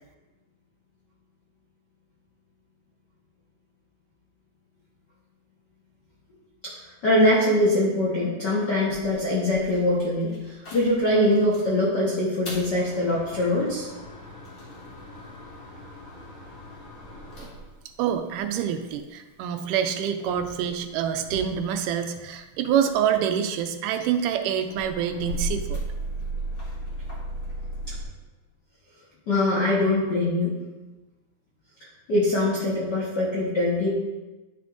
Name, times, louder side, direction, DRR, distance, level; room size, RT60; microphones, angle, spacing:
voice 1, 7.0-13.9 29.3-30.5 32.1-33.9, left 1 dB, 65° left, -6 dB, 1.0 m, -23 dB
sound 1, 8.9-11.7 12.2-19.0 19.7-22.3 22.7-28.0, right 1 dB, 40° left, 1.9 m, -37 dB
voice 2, 18.0-25.8, right 9 dB, 80° right, 7 dB, 2.1 m, -26 dB
11.0 x 5.9 x 2.5 m, 1.1 s
omnidirectional pair, 3.7 m